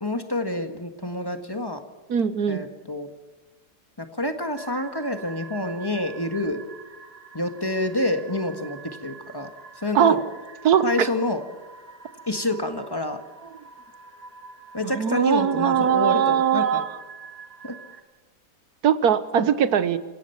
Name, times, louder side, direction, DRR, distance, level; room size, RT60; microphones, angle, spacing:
voice 1, 0.0-1.8 2.5-3.1 4.0-6.6 7.3-10.2 10.8-11.4 12.3-13.2 14.7-16.8 17.6-17.8 19.4-19.5, left 1 dB, 15° left, 6 dB, 1.5 m, -28 dB
voice 2, 2.1-2.6 9.9-10.2 10.6-11.1 14.9-16.9 18.8-20.0, right 8 dB, 70° right, 13 dB, 1.5 m, -20 dB
sound 1, 4.6-18.0, right 4 dB, 35° right, 2.0 m, -45 dB
27.0 x 17.0 x 5.9 m, 1.2 s
omnidirectional pair, 1.8 m